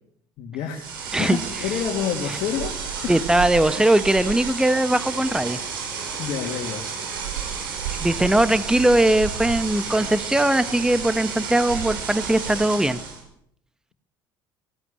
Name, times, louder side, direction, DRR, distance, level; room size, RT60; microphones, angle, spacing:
voice 1, 0.4-0.9 1.2-2.7 3.0-3.2 6.2-6.9, left 8 dB, 60° left, 1 dB, 2.6 m, -28 dB
sound 1, 0.7-13.2, right 6 dB, 80° right, 5.7 m, -31 dB
voice 2, 3.1-5.6 6.0-6.2 8.0-13.0, right 1 dB, 5° right, 12 dB, 1.3 m, -20 dB
19.0 x 16.5 x 8.7 m, 0.72 s
hypercardioid pair, 65°, 11 cm